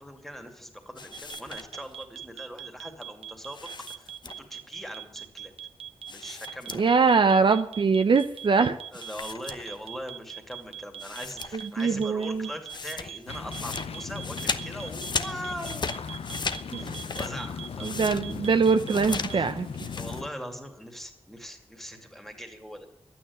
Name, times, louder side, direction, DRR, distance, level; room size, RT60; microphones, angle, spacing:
voice 1, 0.0-3.7 3.9-5.5 6.1-7.1 8.9-15.9 16.3-18.0 19.3-19.5 19.9-22.9, equal, ahead, 4 dB, 2.3 m, -41 dB
sound 1, 1.0-2.0 3.5-4.7 6.1-7.1 7.4-7.5 8.9-10.1 10.6-10.7 11.0-11.8 12.1-20.2, left 4 dB, 50° left, 0.9 m, -37 dB
sound 2, 1.1-19.4, right 10 dB, 80° right, 0.9 m, -41 dB
voice 2, 6.7-8.8 11.5-12.5 16.7-16.9 17.8-19.9, right 5 dB, 55° right, 8 dB, 0.7 m, -23 dB
Waves and Boats in the Laguna, 13.3-20.3, left 6 dB, 85° left, 0.8 m, -38 dB
12.0 x 9.1 x 9.6 m, 0.74 s
wide cardioid pair, 120°, 10 cm